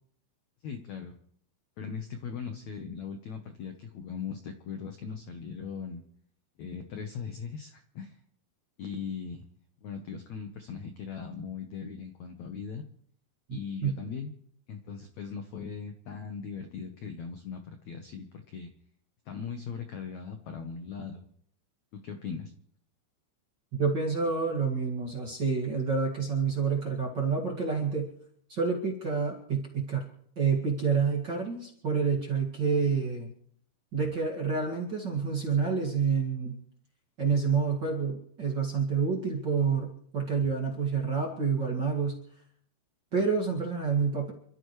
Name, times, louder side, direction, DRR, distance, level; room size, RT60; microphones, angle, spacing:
voice 1, 0.6-1.1 1.8-6.0 6.6-8.2 8.8-9.5 9.8-12.8 13.5-14.3 14.7-18.7 19.3-21.3 21.9-22.5, left 6 dB, 85° left, 6 dB, 1.5 m, -39 dB
voice 2, 13.5-13.9 23.7-28.1 28.5-30.1 30.4-33.3 33.9-36.6 37.2-42.2 43.1-44.3, right 5 dB, 40° right, -2 dB, 1.8 m, -28 dB
28.0 x 14.0 x 3.2 m, 0.65 s
omnidirectional pair, 4.9 m